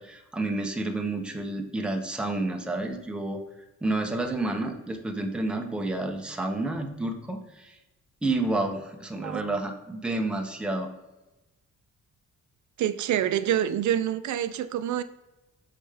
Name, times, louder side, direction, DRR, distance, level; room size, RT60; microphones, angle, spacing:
voice 1, 0.0-3.4 3.8-7.8 8.2-10.9, right 2 dB, 5° right, 0.6 m, -30 dB
voice 2, 12.8-15.0, right 11 dB, 70° right, 0.4 m, -26 dB
6.5 x 5.4 x 3.3 m
wide cardioid pair, 170°, 30 cm